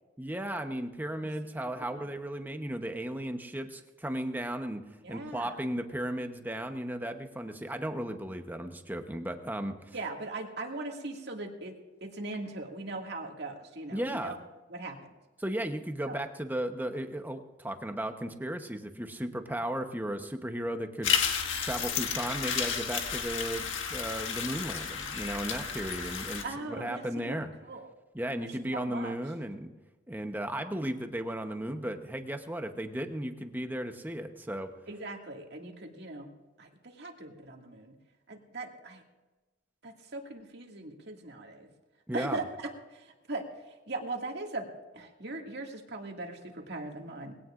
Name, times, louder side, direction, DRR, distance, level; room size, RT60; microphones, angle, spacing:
voice 1, 0.2-9.9 13.9-14.4 15.4-21.1 21.6-27.5 28.1-29.7 30.1-34.7 42.1-42.4, right 1 dB, 10° right, 6 dB, 0.9 m, -35 dB
voice 2, 1.6-2.0 5.0-5.6 9.9-11.7 12.0-14.4 14.7-15.0 16.0-16.2 26.4-27.9 28.4-29.2 34.9-36.3 36.6-37.9 38.3-39.0 39.8-41.7 42.1-43.4 43.9-44.7 44.9-47.3, right 2 dB, 60° right, 1 dB, 2.1 m, -40 dB
sound 1, 21.0-26.4, left 7 dB, 85° left, 1.7 m, -32 dB
21.0 x 17.0 x 2.5 m, 1.2 s
head